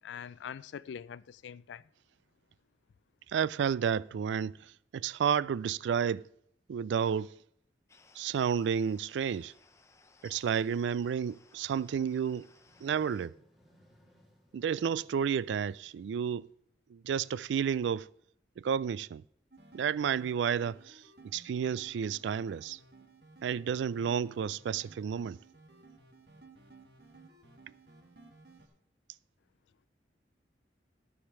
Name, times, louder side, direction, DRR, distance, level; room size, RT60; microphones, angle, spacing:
voice 1, 0.0-1.9, left 7 dB, 80° left, 0.3 m, -43 dB
voice 2, 3.3-6.3 6.7-7.4 8.1-9.5 10.2-12.5 12.8-13.4 14.5-16.5 16.9-18.1 18.6-19.2 19.7-22.8 23.4-25.4, right 7 dB, 80° right, 0.3 m, -31 dB
sound 1, 7.9-13.3, left 3 dB, 15° left, 0.6 m, -62 dB
sound 2, 12.4-16.9, equal, ahead, 2.2 m, -65 dB
sound 3, 19.5-28.7, right 3 dB, 60° right, 1.6 m, -57 dB
13.0 x 5.0 x 6.6 m
head